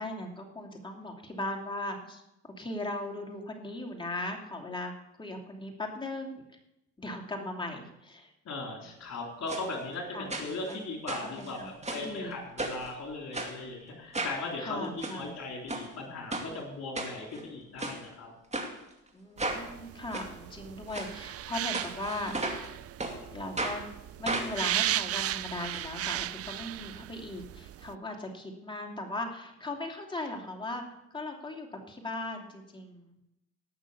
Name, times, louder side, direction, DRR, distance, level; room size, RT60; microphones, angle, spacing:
voice 1, 0.0-4.9 5.2-6.5 7.0-8.3 8.8-8.9 10.1-10.8 11.1-12.4 14.6-15.3 19.1-22.6 23.3-23.8 24.2-30.8 31.1-33.2, left 1 dB, 15° left, 1 dB, 2.7 m, -38 dB
voice 2, 8.5-18.3, left 3 dB, 60° left, 0 dB, 3.9 m, -38 dB
sound 1, 9.5-9.7 10.3-10.8 11.1-12.1 12.6-12.9 13.3-13.5 14.1-14.4 14.8-15.2 15.7-15.9 16.3-16.5 17.0-17.4 17.8-18.0 18.5-18.7 19.4-19.6 20.1-20.3 20.9-21.1 21.7-22.7 23.0-23.2 23.6-23.8 24.3-25.8 26.1-26.2 26.4-26.5, right 2 dB, 20° right, 2.4 m, -34 dB
sound 2, 19.4-27.9, right 13 dB, 50° right, 0.4 m, -36 dB
18.0 x 6.5 x 7.1 m, 0.89 s
cardioid pair, 90°, 30 cm